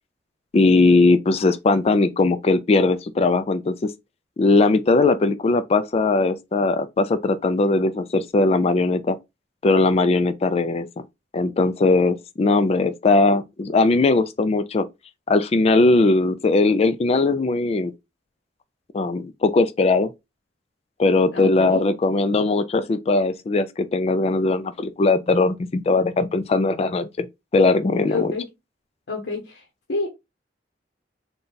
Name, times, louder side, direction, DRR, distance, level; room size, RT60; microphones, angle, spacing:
voice 1, 0.5-3.7 4.4-9.2 9.6-10.9 11.3-14.9 15.3-17.9 18.9-20.1 21.0-27.3 27.5-28.3, left 3 dB, 35° left, 0.4 m, -19 dB
voice 2, 21.3-21.9 28.0-28.5 29.1-29.6 29.9-30.1, left 3 dB, 80° left, 0.9 m, -28 dB
3.9 x 2.3 x 3.9 m
head